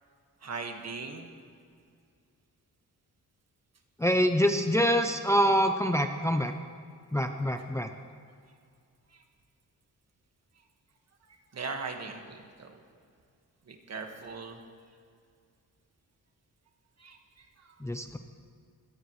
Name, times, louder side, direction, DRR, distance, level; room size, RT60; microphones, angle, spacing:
voice 1, 0.4-1.3 8.0-8.1 9.1-9.2 11.5-12.7 13.7-14.6 17.0-17.5, right 4 dB, 50° right, 3 dB, 1.7 m, -39 dB
voice 2, 4.0-6.5 7.1-7.9 17.8-18.2, equal, 10° left, 5 dB, 0.6 m, -25 dB
24.0 x 17.5 x 3.2 m, 2.2 s
wide cardioid pair, 165°, 34 cm